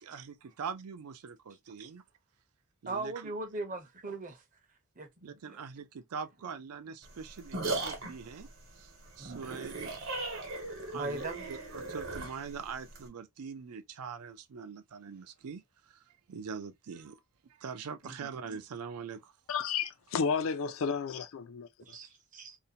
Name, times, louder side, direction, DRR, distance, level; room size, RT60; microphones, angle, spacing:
voice 1, 0.0-2.0 2.8-3.3 5.2-8.5 8.8-8.9 9.2-9.9 10.8-15.6 16.3-17.2 17.6-19.3, right 6 dB, 85° right, 0.4 m, -43 dB
voice 2, 2.9-4.4 5.0-5.6 9.2-9.5 10.9-11.5 18.0-18.3 21.9-22.6, right 2 dB, 35° right, 0.6 m, -40 dB
sound 1, 7.0-13.1, right 2 dB, 55° right, 1.0 m, -38 dB
voice 3, 19.5-21.7, left 6 dB, 65° left, 0.4 m, -32 dB
2.5 x 2.1 x 2.7 m
head